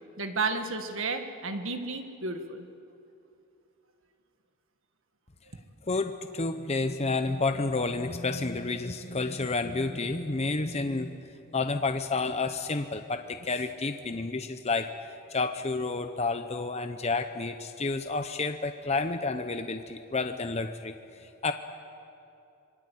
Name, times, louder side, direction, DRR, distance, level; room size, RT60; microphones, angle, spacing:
voice 1, 0.2-2.7, right 3 dB, 60° right, 7 dB, 1.8 m, -32 dB
voice 2, 5.8-14.9 15.3-21.5, left 3 dB, 30° left, 7 dB, 0.8 m, -30 dB
26.0 x 22.0 x 8.5 m, 2.7 s
head